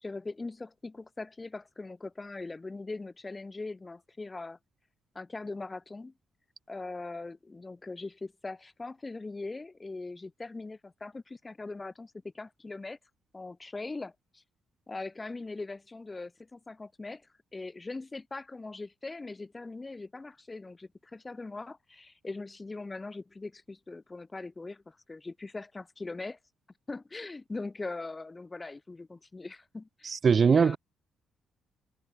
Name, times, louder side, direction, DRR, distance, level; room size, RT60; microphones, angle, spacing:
voice 1, 0.0-4.6 5.1-6.1 6.7-13.0 13.3-14.4 14.9-17.3 17.5-26.4 26.9-30.8, left 3 dB, 20° left, 0.6 m, -41 dB
voice 2, 30.0-30.8, right 6 dB, 45° right, 0.3 m, -21 dB
cardioid pair, 90°, 0 cm